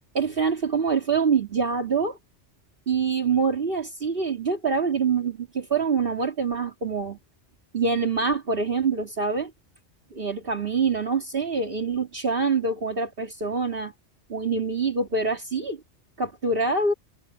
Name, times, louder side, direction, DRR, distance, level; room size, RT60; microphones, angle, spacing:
voice 1, 0.1-2.2 2.9-7.2 7.7-9.5 10.1-13.9 14.3-15.8 16.2-16.9, right 5 dB, 50° right, 2.4 m, -25 dB
omnidirectional pair, 1.2 m